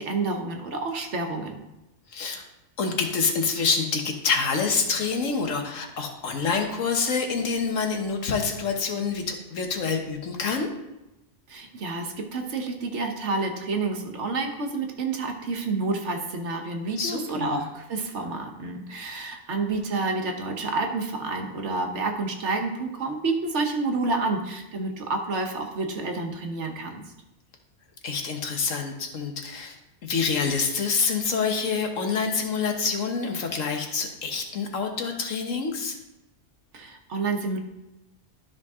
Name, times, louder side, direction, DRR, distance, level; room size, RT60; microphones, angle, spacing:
voice 1, 0.0-1.6 11.5-27.0 36.7-37.6, right 3 dB, 65° right, 3 dB, 1.3 m, -29 dB
voice 2, 2.1-2.4 2.8-10.7 17.0-17.6 28.0-29.8 30.0-36.0, left 5 dB, 85° left, 4 dB, 1.5 m, -27 dB
12.0 x 5.2 x 3.6 m, 0.95 s
omnidirectional pair, 1.3 m